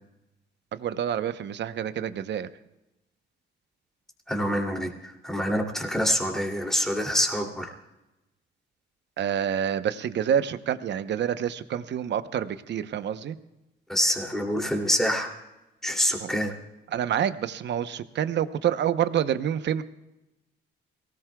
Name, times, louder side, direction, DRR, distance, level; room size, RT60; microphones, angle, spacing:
voice 1, 0.7-2.5 9.2-13.4 16.2-16.3 16.9-19.8, right 9 dB, 65° right, 12 dB, 0.8 m, -27 dB
voice 2, 4.3-7.7 13.9-15.3 15.8-16.5, equal, ahead, 1 dB, 2.7 m, -26 dB
23.0 x 18.5 x 2.3 m, 0.97 s
cardioid pair, 90°, 20 cm